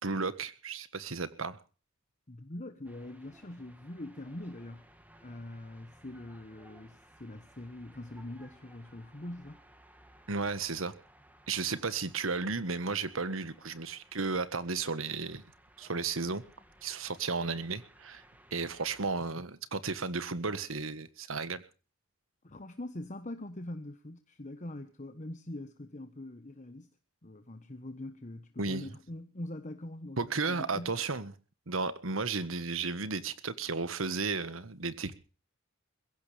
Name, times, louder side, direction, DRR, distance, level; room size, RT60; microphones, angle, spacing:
voice 1, 0.0-1.6 10.3-10.9 11.5-15.4 15.8-16.4 16.8-18.2 18.5-21.6 28.6-28.9 30.2-31.3 31.7-35.1, right 4 dB, 80° right, 1.5 m, -34 dB
voice 2, 2.3-4.9 5.2-9.6 22.4-26.9 27.2-31.0, left 1 dB, 40° left, 1.2 m, -43 dB
sound 1, 2.8-19.0, right 1 dB, 10° right, 2.4 m, -60 dB
22.5 x 16.0 x 3.4 m
head